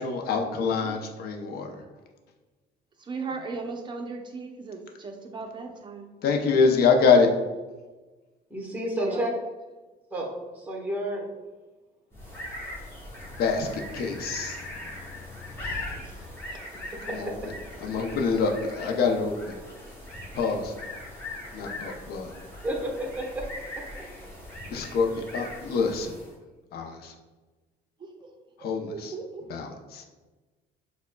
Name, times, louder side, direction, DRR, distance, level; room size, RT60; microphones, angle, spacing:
voice 1, 0.0-1.7 6.2-7.3 13.4-14.6 17.2-17.3 17.8-19.5 20.3-20.7 21.5-22.3 24.7-26.1 26.7-27.1 28.6-28.9 29.5-29.7 29.9-30.0, left 5 dB, 65° left, 3 dB, 0.6 m, -25 dB
voice 2, 3.0-6.1 6.5-6.7 8.9-9.3 16.5-16.6 28.0-28.3 28.9-29.5, right 4 dB, 25° right, 3 dB, 0.6 m, -37 dB
voice 3, 8.5-9.3 10.1-10.3 10.5-11.3 17.1-17.3 22.6-23.4, right 1 dB, 10° right, -1 dB, 1.1 m, -30 dB
sound 1, 12.1-26.4, left 1 dB, 15° left, 1.1 m, -40 dB
6.5 x 2.2 x 2.2 m, 1.2 s
cardioid pair, 110°, 17 cm